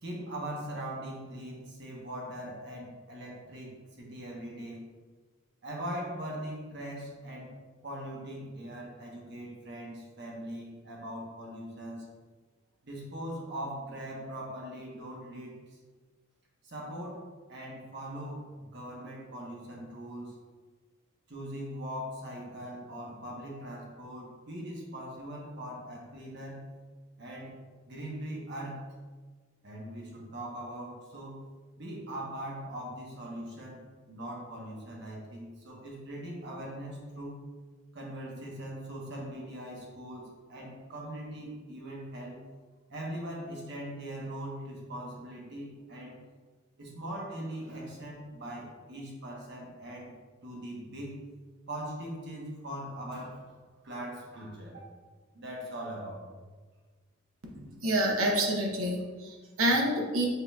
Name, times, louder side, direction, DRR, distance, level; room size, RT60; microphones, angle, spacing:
voice 1, 0.0-4.8 5.6-7.5 7.8-12.1 12.8-15.8 16.6-20.3 21.3-26.7 27.2-27.6 27.9-28.9 29.6-31.5 31.8-37.5 37.9-42.4 42.9-46.2 46.8-50.1 50.4-51.2 51.7-53.6 53.8-54.9 55.3-56.4, right 1 dB, 55° right, -2 dB, 1.0 m, -41 dB
voice 2, 57.5-60.3, right 1 dB, 85° right, 0 dB, 0.9 m, -28 dB
5.7 x 3.7 x 2.3 m, 1.4 s
head